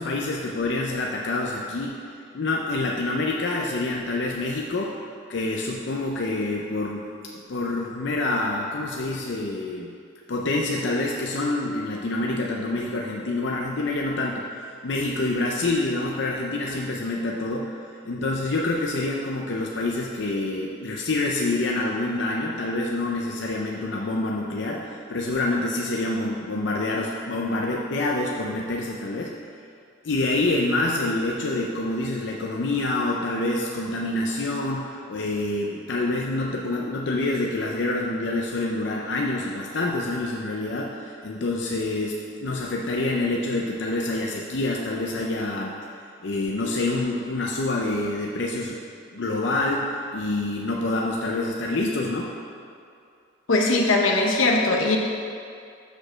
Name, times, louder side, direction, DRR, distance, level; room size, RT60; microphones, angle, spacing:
voice 1, 0.0-2.0 2.3-5.0 5.3-7.1 7.5-9.9 10.3-29.3 30.0-45.8 46.2-48.8 49.1-52.3, left 2 dB, 60° left, -1 dB, 0.6 m, -27 dB
voice 2, 53.5-55.0, left 2 dB, 90° left, 0 dB, 0.9 m, -20 dB
6.6 x 5.0 x 6.2 m, 2.4 s
head